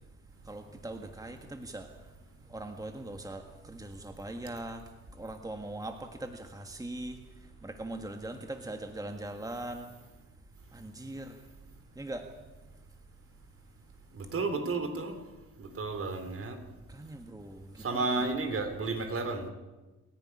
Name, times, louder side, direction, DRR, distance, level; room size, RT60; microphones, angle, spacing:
voice 1, 0.5-1.9 2.5-4.8 5.1-7.2 7.6-9.9 10.7-11.4 12.0-12.3 16.9-18.3, right 1 dB, 10° right, 6 dB, 1.7 m, -41 dB
voice 2, 14.2-15.2 15.6-16.6 17.8-19.5, right 3 dB, 45° right, 7 dB, 3.6 m, -32 dB
28.5 x 10.5 x 9.8 m, 1.2 s
cardioid pair, 90°, 30 cm